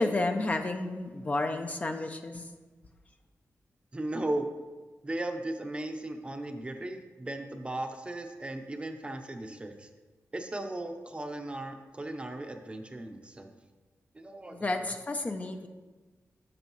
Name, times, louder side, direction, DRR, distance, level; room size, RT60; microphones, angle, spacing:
voice 1, 0.0-2.5 14.5-15.7, left 2 dB, 25° left, 5 dB, 0.5 m, -31 dB
voice 2, 3.9-4.5 5.0-9.9 10.3-13.5 14.1-14.7, right 1 dB, 20° right, 5 dB, 0.7 m, -36 dB
11.0 x 7.3 x 3.0 m, 1.3 s
wide cardioid pair, 150°, 5 cm